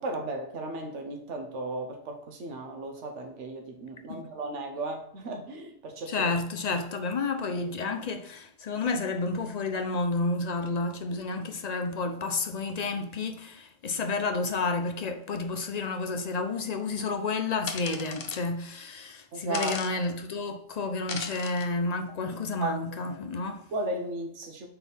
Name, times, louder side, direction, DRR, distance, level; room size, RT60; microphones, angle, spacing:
voice 1, 0.0-6.2 19.3-19.8 22.6-22.7 23.7-24.7, right 2 dB, 85° right, 1.2 m, -35 dB
voice 2, 6.1-23.7, left 3 dB, 45° left, 0.6 m, -30 dB
sound 1, 17.7-18.4 19.5-19.9 21.1-21.7, left 6 dB, 80° left, 1.0 m, -36 dB
4.4 x 4.1 x 5.4 m
omnidirectional pair, 1.2 m